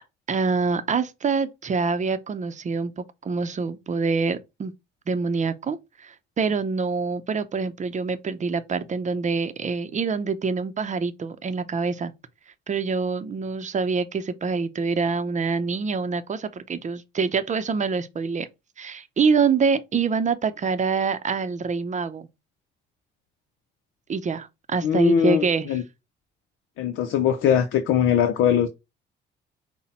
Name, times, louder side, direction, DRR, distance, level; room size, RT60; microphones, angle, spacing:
voice 1, 0.3-4.7 5.1-12.1 12.7-18.5 18.8-22.3 24.1-25.7, right 5 dB, 40° right, 0.6 m, -25 dB
voice 2, 24.8-25.8 26.8-28.7, left 8 dB, 85° left, 0.6 m, -21 dB
5.7 x 2.2 x 4.1 m
cardioid pair, 90°, 20 cm